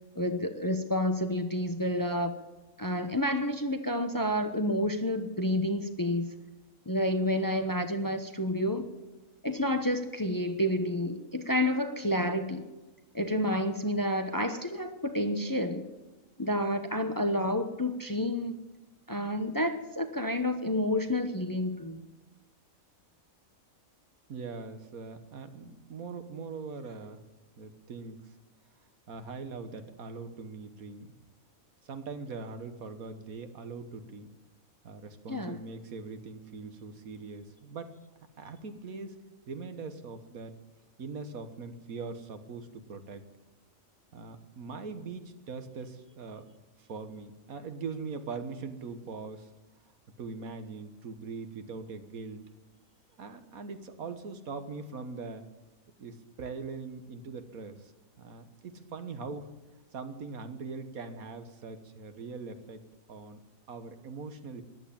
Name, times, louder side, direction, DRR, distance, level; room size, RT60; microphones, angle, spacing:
voice 1, 0.1-2.3 2.8-6.3 6.9-8.9 9.4-12.7 13.1-15.9 16.4-18.6 19.1-22.0 35.3-35.5, left 1 dB, 15° left, 8 dB, 0.8 m, -29 dB
voice 2, 24.3-27.2 27.6-28.2 29.1-31.1 31.8-34.3 34.8-37.9 38.4-39.2 39.5-40.6 41.0-43.2 44.1-46.5 46.8-49.5 50.2-52.4 53.2-55.4 56.0-57.9 58.2-59.5 59.9-62.8 63.1-63.4 63.7-64.6, right 4 dB, 80° right, 9 dB, 1.7 m, -41 dB
14.5 x 11.0 x 8.6 m, 1.1 s
omnidirectional pair, 1.5 m